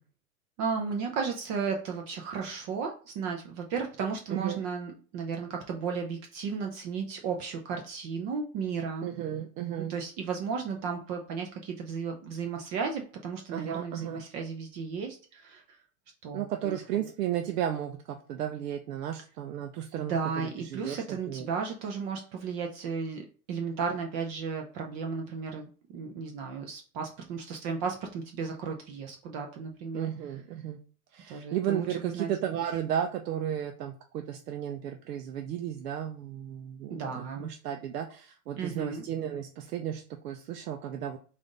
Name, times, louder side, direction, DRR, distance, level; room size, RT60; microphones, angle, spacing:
voice 1, 0.6-9.1 9.9-15.6 16.2-16.8 20.0-30.1 31.3-32.3 36.9-37.5 38.6-39.0, right 5 dB, 35° right, 2 dB, 0.6 m, -34 dB
voice 2, 4.3-4.6 9.0-9.9 13.5-14.2 16.3-21.5 29.9-30.8 31.1-41.2, right 10 dB, 90° right, 5 dB, 0.6 m, -34 dB
3.4 x 2.6 x 3.8 m, 0.40 s
hypercardioid pair, 125°, 46 cm